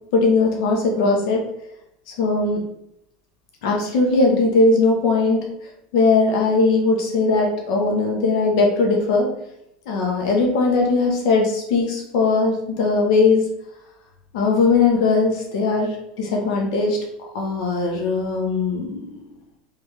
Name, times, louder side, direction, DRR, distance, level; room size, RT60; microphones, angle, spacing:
voice 1, 0.1-1.4 2.1-2.6 3.6-5.4 5.9-9.3 9.9-13.4 14.3-17.0 17.3-19.2, left 3 dB, 65° left, 0 dB, 0.9 m, -19 dB
3.4 x 3.3 x 3.3 m, 0.79 s
supercardioid pair, 160°, 4 cm